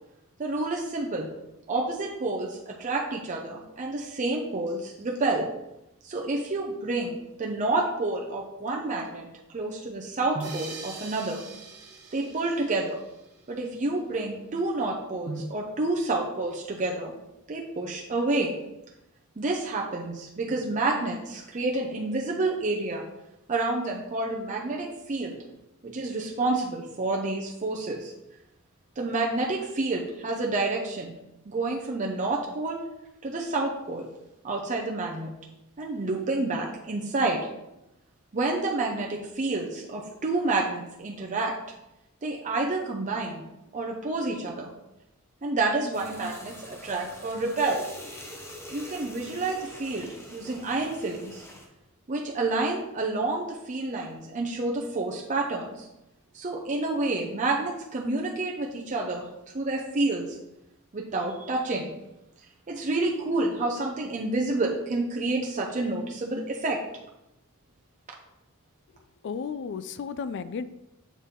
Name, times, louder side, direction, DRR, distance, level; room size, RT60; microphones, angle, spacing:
voice 1, 0.4-1.3 1.7-5.5 6.0-11.4 12.1-13.0 13.5-17.1 17.5-18.6 19.4-23.0 23.5-25.4 25.8-28.1 29.0-31.2 31.5-32.8 33.2-34.1 34.4-35.3 35.8-37.5 38.3-41.5 42.2-43.4 43.7-44.7 45.4-47.8 48.7-51.4 52.1-55.9 56.3-59.3 59.5-60.4 60.9-61.9 62.7-66.8, right 2 dB, 35° right, -1 dB, 0.6 m, -29 dB
sound 1, 10.4-13.7, right 4 dB, 90° right, 1.1 m, -44 dB
sound 2, 45.9-51.7, equal, 10° left, 0.8 m, -44 dB
voice 2, 69.2-70.6, left 6 dB, 55° left, 13 dB, 0.4 m, -33 dB
7.2 x 4.1 x 3.6 m, 0.91 s
head